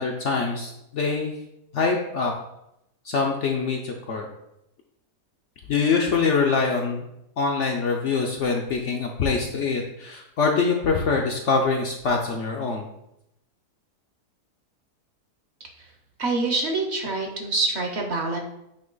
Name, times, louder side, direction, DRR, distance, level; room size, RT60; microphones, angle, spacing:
voice 1, 0.0-1.4 1.7-2.3 3.0-4.3 5.7-7.0 7.4-12.9, left 4 dB, 65° left, 1 dB, 0.8 m, -24 dB
voice 2, 15.6-15.9 16.2-18.4, right 3 dB, 50° right, 2 dB, 0.9 m, -26 dB
8.4 x 2.9 x 3.9 m, 0.83 s
omnidirectional pair, 1.7 m